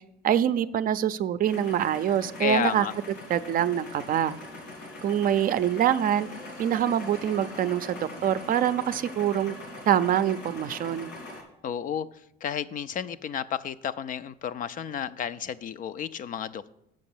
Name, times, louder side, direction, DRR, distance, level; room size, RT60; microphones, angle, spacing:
voice 1, 0.2-2.9 3.3-4.3 5.0-6.3 6.6-9.6 9.9-11.1, right 10 dB, 50° right, 13 dB, 0.5 m, -25 dB
sound 1, 1.4-11.4, left 2 dB, 85° left, 3.0 m, -42 dB
voice 2, 2.4-2.9 11.6-12.1 12.4-16.7, left 8 dB, 45° left, 14 dB, 0.4 m, -31 dB
7.6 x 5.9 x 7.2 m, 0.80 s
cardioid pair, 110°, 19 cm